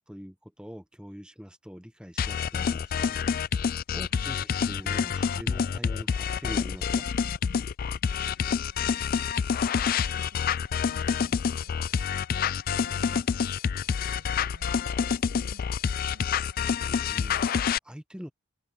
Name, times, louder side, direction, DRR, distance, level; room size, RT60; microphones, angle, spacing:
voice 1, 0.1-7.0 16.6-18.3, equal, 5° right, 0.8 m, -44 dB
sound 1, 2.2-17.8, left 7 dB, 40° left, 0.3 m, -27 dB
voice 2, 8.3-12.1 12.4-16.3, right 1 dB, 85° right, 6.1 m, -56 dB
head